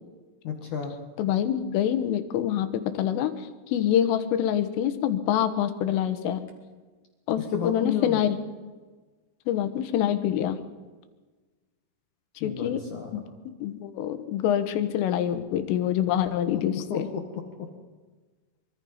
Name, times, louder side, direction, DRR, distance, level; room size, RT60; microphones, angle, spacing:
voice 1, 0.4-0.9 7.4-8.2 12.4-13.1 16.5-17.7, left 7 dB, 60° left, 3 dB, 2.2 m, -32 dB
voice 2, 1.2-3.3 3.7-6.4 7.3-8.4 9.5-10.6 12.4-12.8 13.1-13.2 13.6-17.1, left 10 dB, 85° left, 10 dB, 3.9 m, -26 dB
24.5 x 24.0 x 5.6 m, 1.3 s
omnidirectional pair, 5.6 m